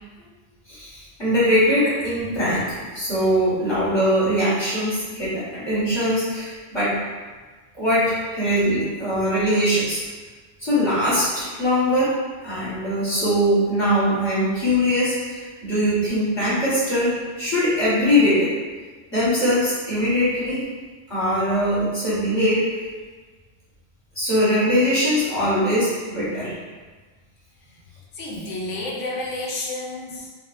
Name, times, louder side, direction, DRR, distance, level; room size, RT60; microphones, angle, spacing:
voice 1, 0.7-6.9 7.8-10.0 10.6-12.1 12.4-18.5 19.1-20.6 21.1-22.6 24.1-26.5, equal, 20° left, -11 dB, 1.4 m, -21 dB
voice 2, 28.1-30.3, left 2 dB, 80° left, -4 dB, 1.0 m, -30 dB
3.3 x 2.6 x 2.5 m, 1.4 s
omnidirectional pair, 1.2 m